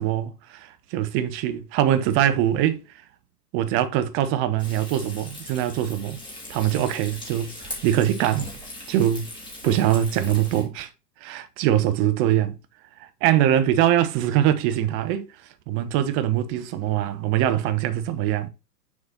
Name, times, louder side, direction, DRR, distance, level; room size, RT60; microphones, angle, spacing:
voice 1, 0.0-2.8 3.5-6.2 6.5-8.5 8.9-9.3 9.6-10.9 11.2-12.6 13.0-15.3 15.7-18.5, right 11 dB, 25° right, 0.8 m, -23 dB
Frying (food), 4.6-10.6, left 1 dB, 10° left, 2.8 m, -39 dB
7.0 x 4.2 x 4.0 m
figure-of-eight pair, 100°, 47 cm